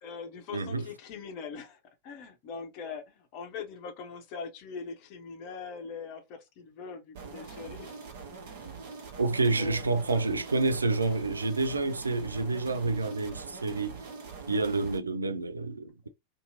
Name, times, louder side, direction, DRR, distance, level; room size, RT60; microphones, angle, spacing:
voice 1, 0.0-8.0 9.5-10.3, left 5 dB, 45° left, 0.7 m, -42 dB
voice 2, 0.5-0.9 9.2-14.0 14.5-16.1, right 3 dB, 75° right, 0.3 m, -28 dB
sound 1, 7.1-15.0, right 5 dB, 55° right, 1.0 m, -44 dB
2.8 x 2.6 x 2.6 m
figure-of-eight pair, 90°, 0 cm